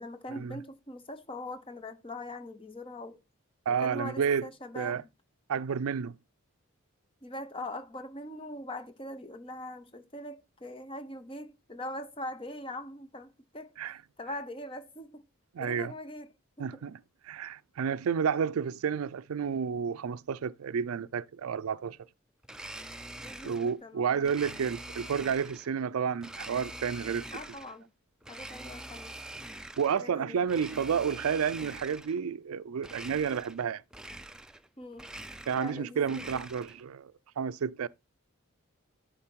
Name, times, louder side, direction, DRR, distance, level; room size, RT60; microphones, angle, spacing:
voice 1, 0.0-3.2 3.8-5.1 7.2-13.7 14.2-15.2 15.6-16.3 16.7-16.8 23.2-24.5 27.3-27.9 28.3-29.2 29.9-30.5 34.8-35.1 35.6-36.4, left 1 dB, 25° left, 0.8 m, -42 dB
voice 2, 3.7-4.5 4.7-5.0 5.5-6.2 13.8-14.0 15.5-15.9 16.6-17.0 17.2-22.0 23.4-27.3 29.8-33.8 35.5-37.9, right 7 dB, 85° right, 0.4 m, -31 dB
Domestic sounds home sounds, 22.4-23.8 24.3-25.7 26.2-27.8 28.2-30.0 30.4-32.2 32.8-33.6 33.9-34.7 34.9-36.8, right 1 dB, 5° right, 0.4 m, -44 dB
11.0 x 3.9 x 4.5 m
head